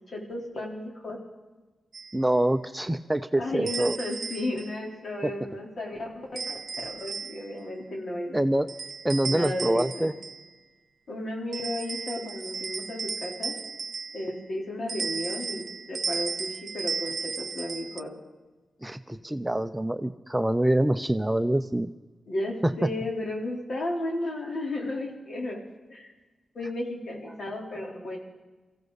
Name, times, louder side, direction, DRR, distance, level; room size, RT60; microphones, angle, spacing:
voice 1, 0.1-1.2 3.4-8.4 9.2-10.1 11.1-13.5 14.1-18.1 22.3-25.6 25.9-26.1 26.5-28.2, left 1 dB, 60° left, 0 dB, 3.8 m, -34 dB
sound 1, 1.9-2.2 3.7-4.7 6.4-7.6 8.7-10.5 11.5-14.4 14.9-18.0, right 5 dB, 60° right, 0.6 m, -35 dB
voice 2, 2.1-4.0 8.3-8.7 9.0-10.1 18.8-21.9, right 1 dB, 10° right, 10 dB, 0.6 m, -25 dB
23.5 x 15.0 x 4.1 m, 1.2 s
cardioid pair, 80°, 0 cm